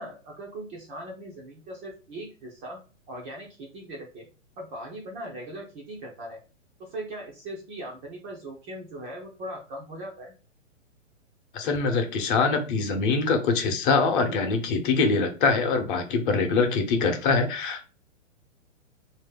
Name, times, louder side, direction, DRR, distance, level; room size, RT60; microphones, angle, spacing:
voice 1, 0.0-4.3 4.6-6.4 6.8-10.3, right 1 dB, 15° right, -1 dB, 0.5 m, -39 dB
voice 2, 11.5-17.9, left 4 dB, 40° left, 5 dB, 0.9 m, -24 dB
3.2 x 2.8 x 3.7 m, 0.34 s
hypercardioid pair, 135°, 39 cm